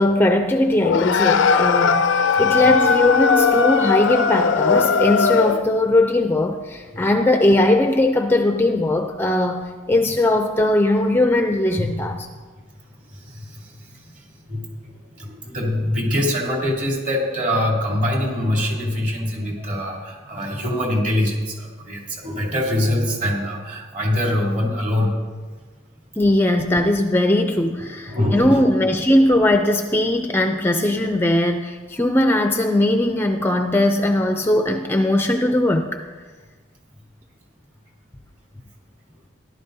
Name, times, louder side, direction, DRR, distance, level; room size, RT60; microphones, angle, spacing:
voice 1, 0.0-12.3 26.2-35.9, left 1 dB, 10° left, 5 dB, 0.5 m, -19 dB
sound 1, 0.8-5.7, left 5 dB, 85° left, 0.5 m, -18 dB
voice 2, 13.1-25.1 27.8-28.7, left 1 dB, 45° right, -3 dB, 3.3 m, -24 dB
17.5 x 11.5 x 2.7 m, 1.4 s
head